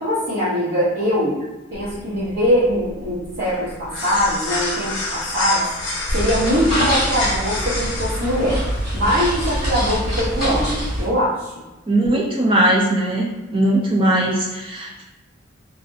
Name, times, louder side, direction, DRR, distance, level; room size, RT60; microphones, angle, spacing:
voice 1, 0.0-1.4 1.7-5.6 6.1-8.6 8.9-11.5, equal, 90° right, -13 dB, 0.9 m, -21 dB
sound 1, 1.7-10.2, left 2 dB, 85° left, 0.7 m, -29 dB
sound 2, 6.1-11.1, equal, ahead, 1.1 m, -24 dB
voice 2, 11.9-15.0, right 1 dB, 25° right, -3 dB, 0.3 m, -19 dB
2.4 x 2.0 x 2.6 m, 1.1 s
head